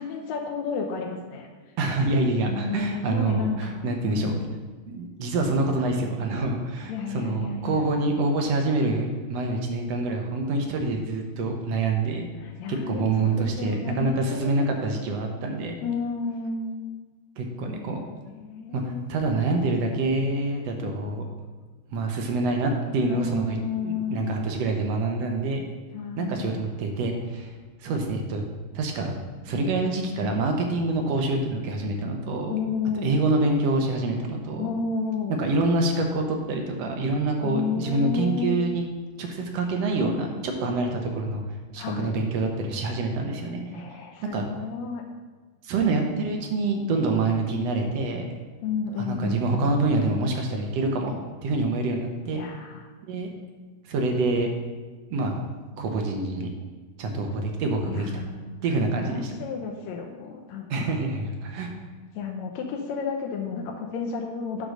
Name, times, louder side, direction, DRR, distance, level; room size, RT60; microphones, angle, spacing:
voice 1, 0.0-1.5 2.5-4.4 6.9-7.9 12.4-14.8 15.8-16.8 17.7-17.8 18.1-19.0 23.1-24.4 25.9-26.5 32.5-33.2 34.6-35.4 37.4-38.6 41.8-42.2 43.7-45.0 48.6-49.7 52.3-52.9 57.9-58.5 58.8-61.0 62.1-64.7, left 5 dB, 75° left, 0 dB, 1.8 m, -32 dB
voice 2, 1.8-4.4 4.9-12.3 12.7-15.8 17.4-18.0 18.7-21.2 21.9-23.6 23.8-25.6 26.2-27.5 27.8-28.5 28.7-29.1 29.4-32.6 33.0-34.7 35.4-38.8 39.2-41.4 41.7-43.6 44.3-44.4 45.6-48.3 49.0-52.4 53.1-53.3 53.9-54.5 55.1-55.4 55.8-56.5 57.0-58.2 58.6-59.3 60.7-61.7, right 2 dB, 65° right, 3 dB, 1.8 m, -26 dB
9.7 x 3.9 x 6.4 m, 1.4 s
omnidirectional pair, 3.7 m